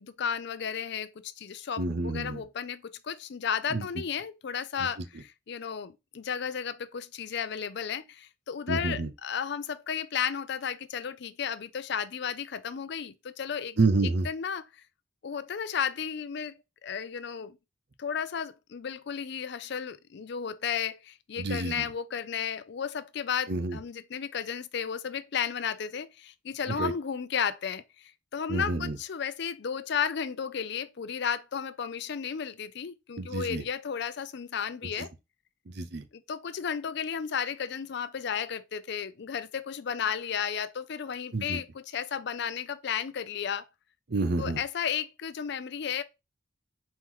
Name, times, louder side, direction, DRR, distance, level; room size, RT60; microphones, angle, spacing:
voice 1, 0.0-13.8 14.2-14.6 15.2-17.6 18.0-35.1 36.1-43.6 44.4-46.0, left 7 dB, 60° left, 0.4 m, -33 dB
voice 2, 1.8-2.4 3.7-3.9 4.8-5.0 8.7-9.1 13.8-14.3 21.4-21.9 23.5-23.8 26.7-26.9 28.5-29.0 33.2-33.6 34.8-35.1 35.7-36.0 41.3-41.6 44.1-44.6, right 3 dB, 55° right, 0.7 m, -29 dB
4.4 x 3.0 x 3.6 m
head